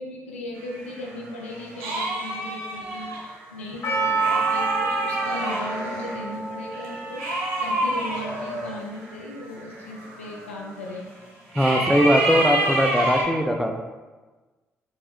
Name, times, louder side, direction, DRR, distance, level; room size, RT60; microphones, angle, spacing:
voice 1, 0.0-11.1, left 1 dB, 90° left, -1 dB, 0.3 m, -37 dB
sound 1, 0.6-6.3 6.7-11.0 11.5-13.2, right 1 dB, 80° right, 0.5 m, -29 dB
Percussion, 3.8-8.2 8.4-8.5, right 4 dB, 40° left, 0.7 m, -28 dB
voice 2, 11.5-13.8, equal, ahead, 3 dB, 0.4 m, -20 dB
4.4 x 2.0 x 3.1 m, 1.3 s
hypercardioid pair, 40°, 7 cm